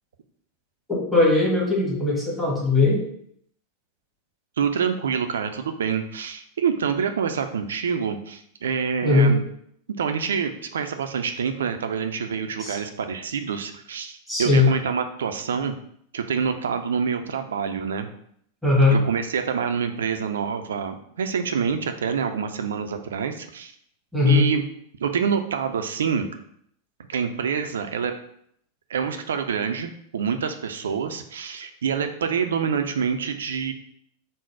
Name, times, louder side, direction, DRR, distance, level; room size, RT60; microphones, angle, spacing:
voice 1, 0.9-3.0 9.0-9.3 12.6-12.8 14.3-14.7 18.6-19.0 24.1-24.4, left 3 dB, 5° left, -5 dB, 1.1 m, -19 dB
voice 2, 4.6-9.4 9.9-15.7 16.1-18.1 18.9-23.7 24.2-24.6 25.0-26.3 27.1-28.1 28.9-33.7, right 6 dB, 65° right, 7 dB, 0.3 m, -26 dB
3.9 x 2.0 x 4.4 m, 0.68 s
figure-of-eight pair, 90°, 0 cm